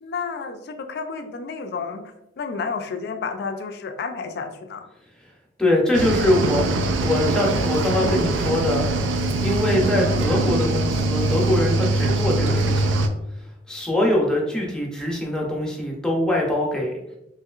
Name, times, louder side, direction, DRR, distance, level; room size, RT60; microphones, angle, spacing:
voice 1, 0.0-4.9, left 5 dB, 60° left, 7 dB, 0.4 m, -31 dB
voice 2, 5.6-8.9 9.4-13.0 13.7-16.9, left 1 dB, 5° left, -3 dB, 0.6 m, -23 dB
Cricket / Waves surf, 5.9-13.1, right 2 dB, 90° right, 0.3 m, -22 dB
3.0 x 2.8 x 2.4 m, 0.86 s
head